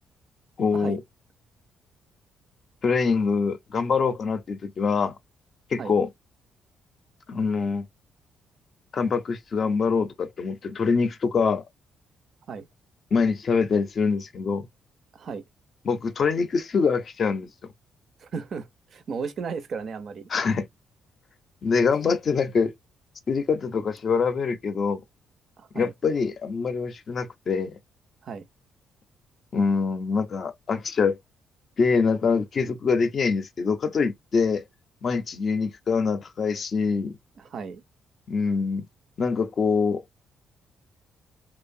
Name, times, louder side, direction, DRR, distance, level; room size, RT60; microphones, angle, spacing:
voice 1, 0.6-1.0 2.8-5.2 5.7-6.1 7.3-7.8 8.9-11.6 13.1-14.7 15.8-17.7 20.3-20.7 21.6-22.7 23.3-25.0 25.7-27.8 29.5-31.2 31.8-34.6 35.0-37.2 38.3-38.9 39.2-40.0, left 5 dB, 50° left, 0.5 m, -24 dB
voice 2, 15.1-15.4 18.2-20.3 25.6-25.9 28.2-28.5 37.4-37.8, right 5 dB, 55° right, 0.4 m, -35 dB
2.6 x 2.1 x 2.5 m
cardioid pair, 90°, 0 cm